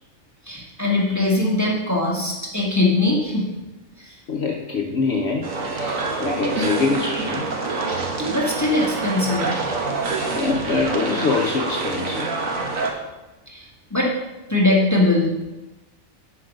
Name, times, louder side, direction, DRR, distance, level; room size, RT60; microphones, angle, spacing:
voice 1, 0.5-3.5 4.0-4.1 8.3-9.5 13.5-13.6 13.9-14.1 14.5-15.3, left 2 dB, 15° left, -2 dB, 1.5 m, -21 dB
voice 2, 4.3-5.5 5.8-7.5 10.3-12.3, left 4 dB, 55° left, -1 dB, 1.1 m, -24 dB
sound 1, 5.4-12.9, right 3 dB, 75° right, 1.6 m, -26 dB
10.5 x 5.2 x 5.3 m, 1.0 s
omnidirectional pair, 1.4 m